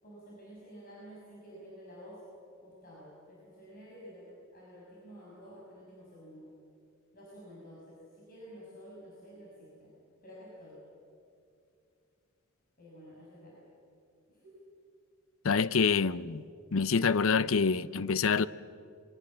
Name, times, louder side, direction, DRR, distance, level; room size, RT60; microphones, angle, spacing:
voice 1, 0.0-2.2 2.6-6.5 7.1-10.0 10.2-10.9 12.8-13.7 14.3-14.6, equal, 45° left, 6.3 m, -51 dB
voice 2, 15.4-16.4 16.7-18.5, left 5 dB, 75° left, 0.6 m, -26 dB
27.5 x 23.0 x 7.6 m
head